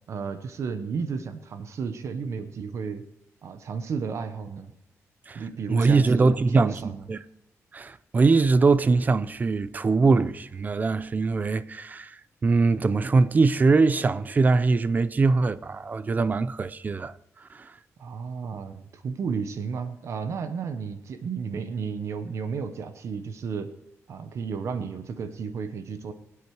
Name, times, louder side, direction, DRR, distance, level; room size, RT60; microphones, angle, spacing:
voice 1, 0.1-3.0 3.4-4.7 5.3-7.0 18.0-23.7 24.1-26.1, right 5 dB, 65° right, 1.0 m, -33 dB
voice 2, 5.7-6.8 7.1-7.2 7.7-17.1 17.5-17.7, right 4 dB, 30° right, 0.5 m, -22 dB
22.0 x 8.4 x 4.7 m
cardioid pair, 125°, 6 cm